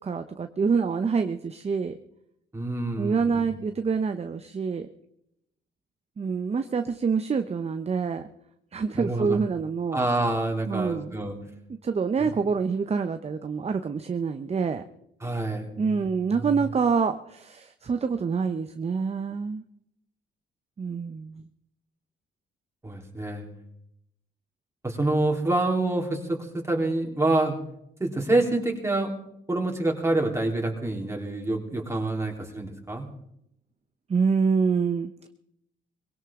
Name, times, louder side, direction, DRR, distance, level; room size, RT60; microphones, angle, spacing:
voice 1, 0.0-2.0 3.0-4.9 6.2-8.2 8.7-10.0 10.7-11.1 11.8-14.8 15.8-19.6 20.8-21.4 34.1-35.3, right 5 dB, 30° right, 8 dB, 0.8 m, -26 dB
voice 2, 2.5-3.6 9.0-9.4 9.9-11.4 12.2-12.3 15.2-16.5 22.8-23.5 24.8-27.6 28.0-29.1 29.5-33.1, right 2 dB, 15° right, 1 dB, 3.7 m, -27 dB
22.0 x 17.0 x 3.8 m, 0.77 s
cardioid pair, 90°, 20 cm